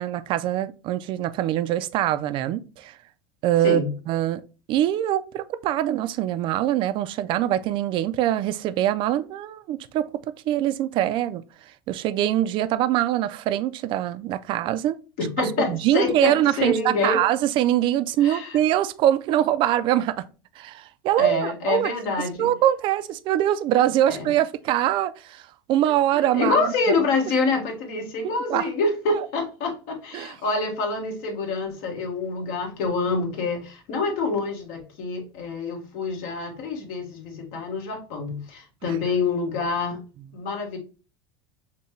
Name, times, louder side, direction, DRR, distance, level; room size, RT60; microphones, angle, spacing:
voice 1, 0.0-3.0 3.4-4.4 4.7-10.1 10.5-11.4 11.9-15.0 15.7-20.2 20.6-21.9 22.2-26.7 28.2-28.7 29.1-29.3 30.1-30.3 38.8-39.0, right 12 dB, 45° right, 0.4 m, -23 dB
voice 2, 15.2-17.2 18.2-18.6 21.2-22.5 24.1-24.3 26.1-40.0 40.3-40.8, left 3 dB, 65° left, 1.5 m, -26 dB
5.5 x 2.2 x 3.1 m
supercardioid pair, 135°, 12 cm